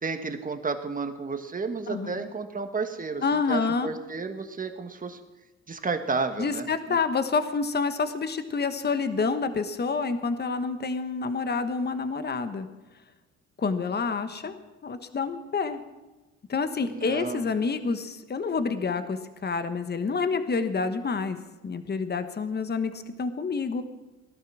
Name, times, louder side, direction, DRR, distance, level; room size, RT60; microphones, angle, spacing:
voice 1, 0.0-5.2 5.7-7.0 14.4-14.5 16.8-17.5, right 4 dB, 25° right, 7 dB, 1.7 m, -32 dB
voice 2, 1.9-2.2 3.2-3.9 6.4-12.7 13.6-14.5 14.8-15.8 16.5-21.4 21.6-23.8, left 4 dB, 35° left, 10 dB, 1.3 m, -28 dB
17.5 x 11.5 x 6.3 m, 1.1 s
cardioid pair, 90°, 30 cm